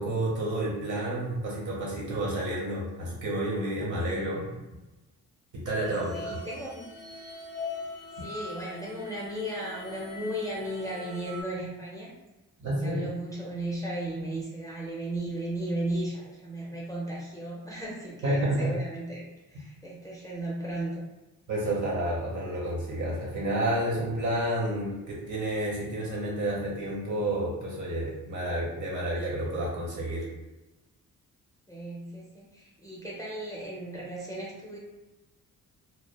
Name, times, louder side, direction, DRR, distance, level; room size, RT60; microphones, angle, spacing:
voice 1, 0.0-4.5 5.5-6.4 8.2-8.3 12.6-13.0 18.2-18.7 21.5-30.2, right 1 dB, 55° right, -4 dB, 1.1 m, -30 dB
sound 1, 5.8-11.4, left 3 dB, 90° right, 0.8 m, -41 dB
voice 2, 5.9-6.8 8.2-12.1 12.6-19.2 19.5-21.0 31.7-34.8, right 1 dB, 10° left, -6 dB, 0.5 m, -35 dB
2.3 x 2.0 x 3.3 m, 1.0 s
wide cardioid pair, 120°, 35 cm